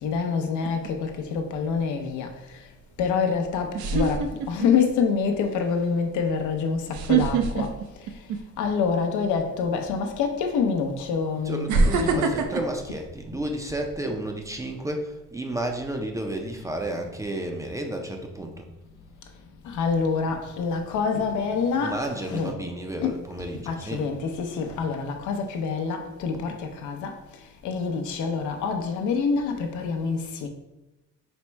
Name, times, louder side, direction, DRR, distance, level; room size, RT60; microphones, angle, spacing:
voice 1, 0.0-2.3 3.0-7.7 8.6-12.3 19.6-22.0 22.3-22.5 23.0-23.1 23.7-27.1 27.6-30.5, left 5 dB, 90° left, 0.6 m, -26 dB
sound 1, 0.6-1.1 3.0-3.1 3.7-4.9 5.3-5.6 6.9-8.7 9.1-9.4 10.4-10.5 11.7-13.9 14.4-14.7, right 4 dB, 85° right, 0.5 m, -25 dB
voice 2, 11.4-18.7 21.8-24.1, right 1 dB, 10° right, 0.3 m, -32 dB
4.3 x 2.0 x 4.4 m
cardioid pair, 120°, 29 cm